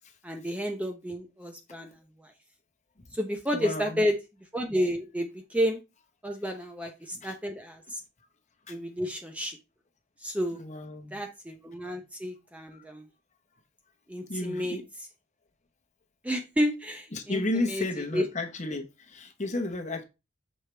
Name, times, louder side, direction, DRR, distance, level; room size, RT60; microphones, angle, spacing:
voice 1, 0.2-2.3 3.1-4.2 4.5-5.8 6.2-8.0 8.7-9.6 10.2-10.6 11.1-13.1 14.1-14.8 16.2-17.4 17.7-17.9 18.1-18.2, equal, 5° right, 0.6 m, -31 dB
voice 2, 3.5-4.0 7.1-7.3 8.7-8.8 10.5-11.2 12.7-12.8 14.3-14.8 17.1-20.0, left 2 dB, 35° left, 1.0 m, -33 dB
6.5 x 4.5 x 3.3 m
head